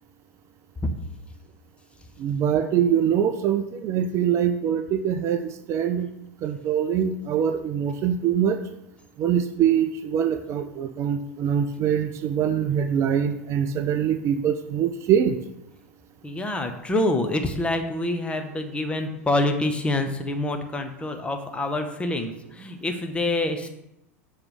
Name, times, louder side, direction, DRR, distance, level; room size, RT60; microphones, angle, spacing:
voice 1, 2.2-6.1 6.4-8.6 9.2-15.4, right 8 dB, 40° right, 9 dB, 0.5 m, -23 dB
voice 2, 16.2-23.7, left 2 dB, 15° left, 5 dB, 0.8 m, -26 dB
6.8 x 3.2 x 5.6 m, 0.85 s
figure-of-eight pair, 85°, 8 cm